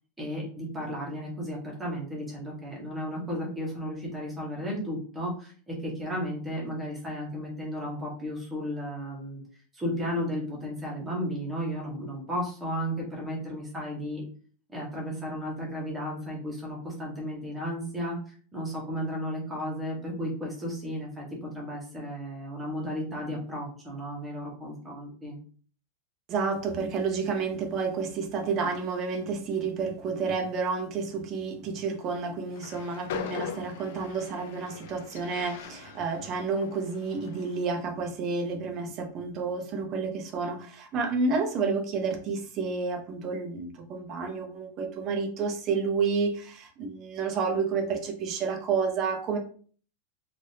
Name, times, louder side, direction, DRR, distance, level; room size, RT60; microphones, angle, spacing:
voice 1, 0.2-9.4 9.7-14.2 14.7-25.4, equal, 10° right, -3 dB, 0.9 m, -34 dB
voice 2, 26.3-49.4, right 4 dB, 25° right, 4 dB, 0.5 m, -30 dB
Train, 32.5-37.7, left 8 dB, 55° left, 0.3 m, -41 dB
3.3 x 2.5 x 2.7 m, 0.43 s
supercardioid pair, 175°, 0 cm